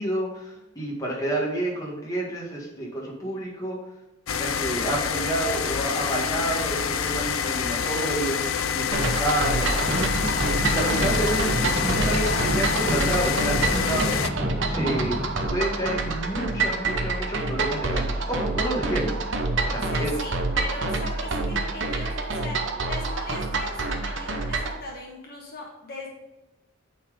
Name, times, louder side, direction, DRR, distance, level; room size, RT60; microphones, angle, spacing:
voice 1, 0.0-3.8 4.4-8.4 8.7-9.9 10.6-14.1 14.6-15.2 15.5-19.2 19.6-20.1, right 1 dB, 15° left, -3 dB, 1.7 m, -29 dB
sound 1, 4.3-14.3, left 7 dB, 80° left, 0.5 m, -27 dB
sound 2, 8.9-24.8, right 3 dB, 60° right, 0.9 m, -27 dB
sound 3, 9.8-15.5, equal, 15° right, 0.8 m, -30 dB
voice 2, 12.1-12.6 19.6-26.1, left 2 dB, 45° left, -2 dB, 1.4 m, -38 dB
8.4 x 4.1 x 5.0 m, 1.0 s
head